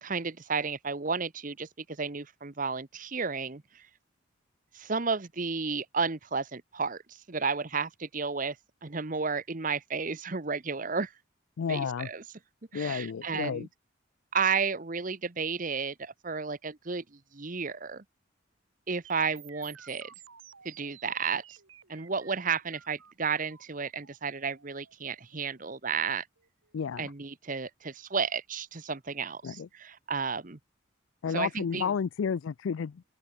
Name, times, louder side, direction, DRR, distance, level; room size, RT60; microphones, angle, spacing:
voice 1, 0.0-3.8 4.7-8.6 8.8-11.1 11.7-12.2 12.7-13.7 14.3-18.0 18.9-20.1 20.6-21.4 21.9-26.3 27.0-30.6 31.3-31.9, right 5 dB, 40° right, 1.0 m, -32 dB
voice 2, 11.6-12.1 12.7-13.7 26.7-27.1 29.4-29.7 31.2-33.0, left 6 dB, 75° left, 0.4 m, -31 dB
sound 1, 19.0-27.0, right 9 dB, 85° right, 2.8 m, -54 dB
open air
head